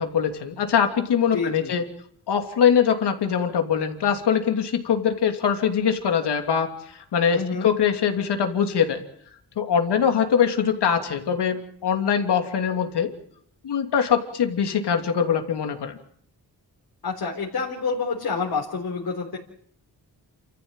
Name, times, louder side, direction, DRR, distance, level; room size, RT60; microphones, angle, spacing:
voice 1, 0.0-1.8 2.3-9.0 9.6-13.1 13.6-16.0, left 7 dB, 90° left, 5 dB, 3.0 m, -22 dB
voice 2, 1.3-1.7 7.3-7.7 17.0-19.4, left 4 dB, 65° left, -1 dB, 4.0 m, -28 dB
29.0 x 14.0 x 9.0 m, 0.67 s
wide cardioid pair, 100°, 39 cm